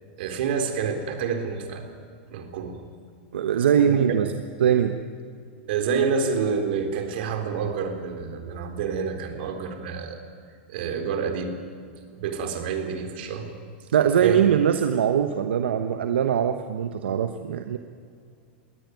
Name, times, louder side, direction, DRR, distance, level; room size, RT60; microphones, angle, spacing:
voice 1, 0.2-1.9 2.3-2.8 3.8-4.2 5.7-10.2 10.7-11.6 12.1-13.5 14.2-14.4, right 6 dB, 65° right, 6 dB, 3.8 m, -28 dB
voice 2, 3.3-4.3 4.6-5.0 13.9-17.8, right 8 dB, 85° right, 8 dB, 1.1 m, -22 dB
21.5 x 18.0 x 9.4 m, 2.3 s
hypercardioid pair, 125°, 6 cm